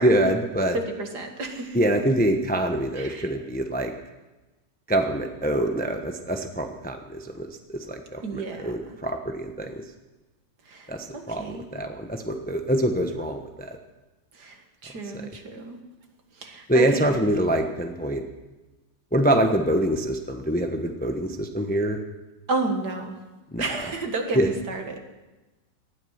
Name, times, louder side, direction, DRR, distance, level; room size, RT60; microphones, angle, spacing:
voice 1, 0.0-0.8 1.7-3.9 4.9-9.8 10.9-13.8 15.1-15.3 16.7-18.2 19.1-22.0 23.5-23.7 24.3-24.5, right 1 dB, 5° left, 5 dB, 0.7 m, -25 dB
voice 2, 0.7-1.8 3.0-3.3 8.2-8.7 10.7-11.7 14.4-15.8 16.4-17.0 22.5-23.2 23.6-25.0, right 3 dB, 65° right, 4 dB, 2.3 m, -31 dB
19.0 x 13.0 x 5.8 m, 1.1 s
omnidirectional pair, 2.0 m